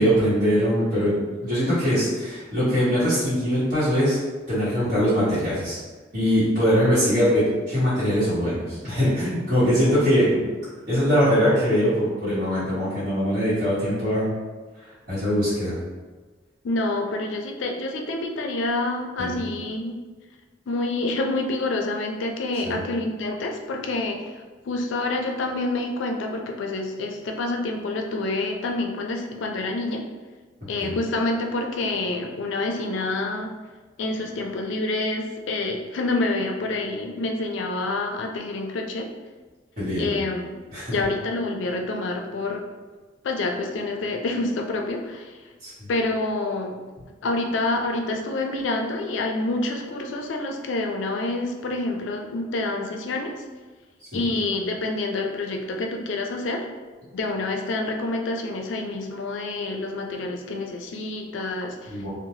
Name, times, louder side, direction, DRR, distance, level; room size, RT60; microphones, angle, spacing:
voice 1, 0.0-4.2 4.5-5.8 6.1-10.5 10.9-14.3 15.1-15.7 19.2-19.3 22.6-22.8 30.8-30.9 39.8-40.1 40.7-40.9 45.6-45.9 54.1-54.2 61.9-62.1, equal, 50° right, -14 dB, 1.2 m, -22 dB
voice 2, 16.6-20.0 20.7-24.2 24.6-30.0 30.7-33.5 34.0-39.1 40.0-40.5 40.9-42.6 43.2-45.3 45.9-46.8 47.2-53.3 54.1-56.6 57.1-62.1, left 2 dB, 80° left, 3 dB, 0.4 m, -27 dB
2.7 x 2.1 x 3.0 m, 1.3 s
head